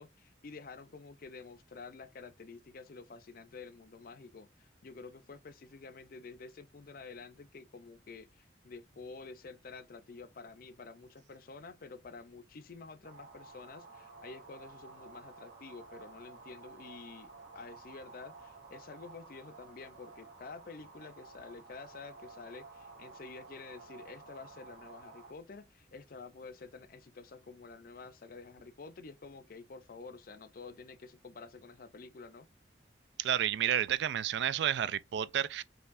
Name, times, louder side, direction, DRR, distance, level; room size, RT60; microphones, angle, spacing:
voice 1, 0.0-17.3 17.5-32.5, left 4 dB, 50° left, 0.4 m, -49 dB
sound 1, 13.0-25.3, right 3 dB, 90° right, 1.5 m, -53 dB
voice 2, 33.2-35.6, right 10 dB, 65° right, 0.3 m, -31 dB
4.5 x 3.1 x 2.5 m
head